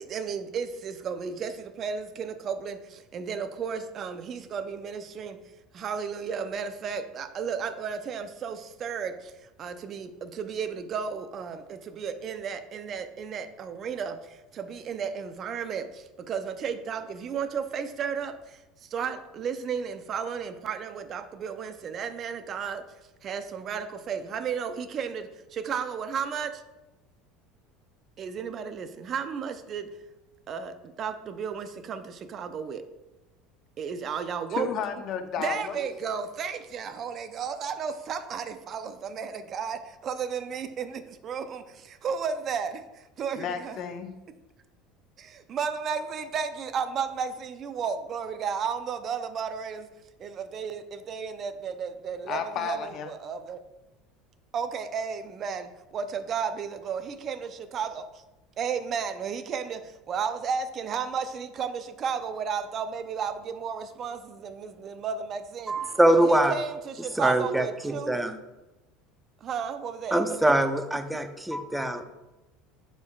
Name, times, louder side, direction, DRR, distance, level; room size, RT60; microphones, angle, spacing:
voice 1, 0.1-1.5 1.8-2.7 3.1-5.3 5.8-9.1 9.6-10.1 10.4-11.6 12.0-14.1 14.7-15.8 16.3-18.3 18.9-22.8 23.2-25.2 25.7-26.5 28.2-29.8 30.5-30.7 31.0-32.0 32.3-32.8 33.8-34.7 35.4-39.8 40.1-40.9 41.2-41.4 42.0-42.7 43.2-43.7 45.5-49.8 50.5-50.8 51.1-52.8 53.1-53.6 54.5-55.6 55.9-57.4 57.7-57.9 58.6-59.8 60.1-61.7 62.0-63.3 63.6-64.2 64.4-64.5 64.8-65.7 66.1-66.7 67.2-68.1 69.5-70.4, right 6 dB, 45° right, 10 dB, 0.6 m, -33 dB
voice 2, 34.6-35.9 43.4-44.1 52.3-53.1, left 6 dB, 50° left, 7 dB, 0.7 m, -32 dB
voice 3, 65.7-66.5 67.2-68.3 70.1-72.0, right 1 dB, 5° right, 7 dB, 0.7 m, -23 dB
6.8 x 6.7 x 2.3 m, 1.0 s
hypercardioid pair, 80°, 0 cm